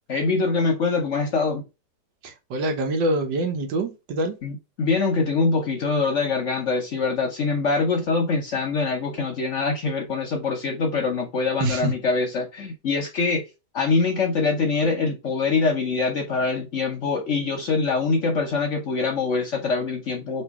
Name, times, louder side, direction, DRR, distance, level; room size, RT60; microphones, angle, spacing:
voice 1, 0.1-1.7 4.4-13.4 13.7-20.4, left 4 dB, 55° left, 0.8 m, -24 dB
voice 2, 2.2-4.4 11.6-11.9, right 1 dB, 85° right, 1.6 m, -25 dB
3.3 x 3.0 x 4.5 m
omnidirectional pair, 1.9 m